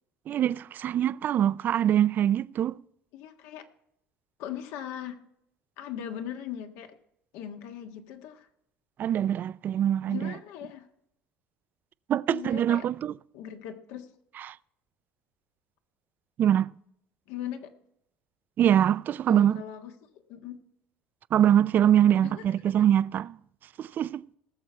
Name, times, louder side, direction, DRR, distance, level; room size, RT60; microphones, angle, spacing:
voice 1, 0.3-2.7 9.0-10.3 12.1-13.1 14.5-14.6 16.4-16.7 18.6-19.6 21.3-23.4 23.8-24.3, right 10 dB, 45° right, 0.3 m, -23 dB
voice 2, 3.1-3.7 4.4-5.2 5.8-6.9 7.3-8.5 10.1-10.9 12.3-12.9 13.3-14.1 17.3-17.7 19.3-19.9 20.3-20.6 22.2-22.5, left 10 dB, 75° left, 1.5 m, -39 dB
19.0 x 6.9 x 4.4 m
cardioid pair, 115°, 5 cm